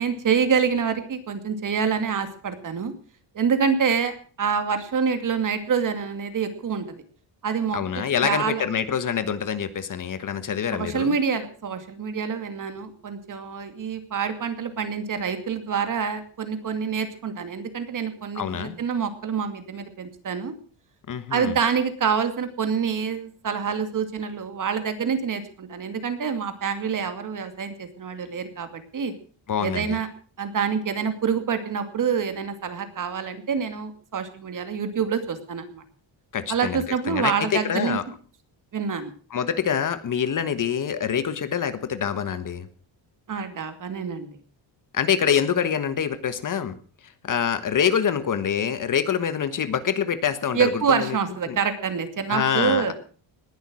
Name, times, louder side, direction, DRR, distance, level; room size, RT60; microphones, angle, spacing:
voice 1, 0.0-2.9 3.3-7.0 7.4-8.6 10.7-20.5 21.3-29.1 29.6-30.1 30.4-35.8 36.5-38.0 38.7-39.1 43.3-44.3 50.5-52.9, right 6 dB, 40° right, 8 dB, 2.4 m, -26 dB
voice 2, 7.7-11.1 18.3-18.7 21.1-21.5 29.5-30.0 36.3-38.0 39.3-42.7 44.9-46.8 47.2-51.2 51.5-51.6 52.3-52.9, left 8 dB, 40° left, 12 dB, 1.4 m, -25 dB
19.5 x 11.5 x 6.2 m, 0.42 s
cardioid pair, 170°, 47 cm